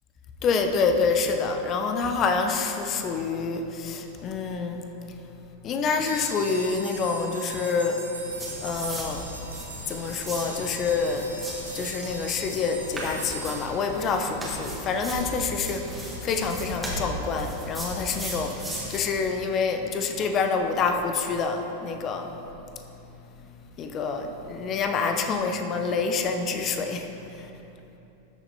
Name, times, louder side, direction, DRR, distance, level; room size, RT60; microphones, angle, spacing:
voice 1, 0.4-4.8 5.6-8.0 8.6-9.2 9.9-11.3 11.7-22.3 23.8-27.5, left 4 dB, 30° left, 5 dB, 0.7 m, -27 dB
sound 1, 6.0-14.5, right 2 dB, 80° right, 1.3 m, -40 dB
sound 2, 8.3-19.0, equal, 5° right, 1.7 m, -37 dB
13.5 x 6.7 x 2.8 m, 3.0 s
figure-of-eight pair, 90°, 0 cm